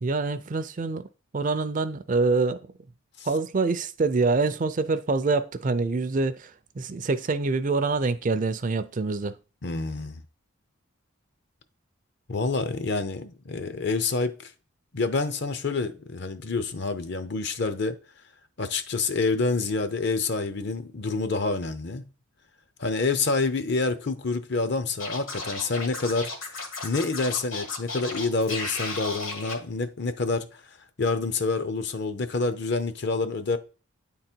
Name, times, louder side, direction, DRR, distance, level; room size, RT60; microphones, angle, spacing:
voice 1, 0.0-1.0 1.3-2.6 3.3-6.5 6.8-9.3, right 3 dB, 40° right, 0.4 m, -25 dB
voice 2, 9.6-10.2 12.3-14.3 14.9-18.0 18.6-22.1 22.8-26.3 26.8-30.6 31.0-33.6, left 3 dB, 50° left, 0.6 m, -27 dB
Scratching (performance technique), 25.0-29.5, left 3 dB, 75° left, 1.9 m, -34 dB
9.4 x 3.8 x 4.4 m
head